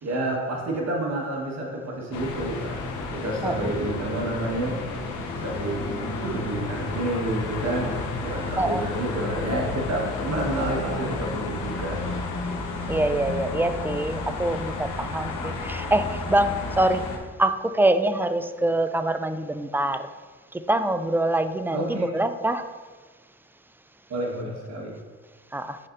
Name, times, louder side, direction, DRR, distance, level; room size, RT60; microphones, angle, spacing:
voice 1, 0.0-4.8 5.4-12.1 21.7-22.1 24.1-24.9, right 1 dB, 60° right, -2 dB, 1.4 m, -29 dB
sound 1, 2.1-17.2, left 3 dB, 85° left, 0.8 m, -32 dB
voice 2, 12.9-17.1 17.4-20.1 20.5-22.7 25.5-25.8, right 1 dB, 5° right, 9 dB, 0.3 m, -24 dB
10.5 x 4.3 x 2.6 m, 1.4 s
cardioid pair, 90°, 30 cm